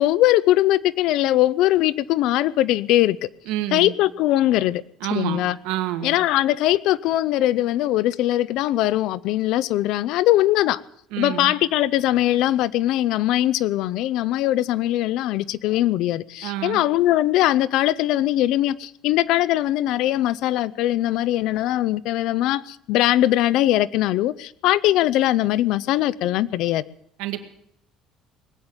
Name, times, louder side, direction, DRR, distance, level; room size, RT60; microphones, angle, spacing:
voice 1, 0.0-3.2 3.7-4.8 5.1-5.6 6.0-10.8 11.2-26.8, left 14 dB, 65° left, 0.6 m, -21 dB
voice 2, 3.5-3.9 5.0-6.2 11.1-11.5 16.4-16.8 27.2-27.4, right 12 dB, 85° right, 1.9 m, -28 dB
20.0 x 8.9 x 7.9 m
cardioid pair, 155°, 0 cm